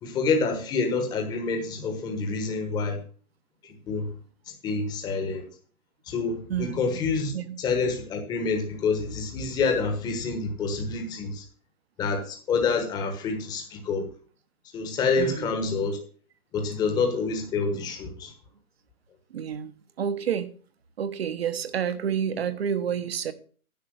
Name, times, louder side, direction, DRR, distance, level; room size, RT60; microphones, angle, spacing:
voice 1, 0.0-3.0 3.9-4.1 4.6-5.5 6.1-7.3 7.6-11.4 12.0-14.1 14.7-16.0 16.5-18.3, left 4 dB, 10° left, 1.2 m, -27 dB
voice 2, 6.5-7.0 7.3-7.6 15.2-15.5 19.3-19.7 20.0-20.5 21.0-23.3, right 8 dB, 45° right, 1.1 m, -29 dB
10.5 x 6.6 x 6.4 m
hypercardioid pair, 155°, 43 cm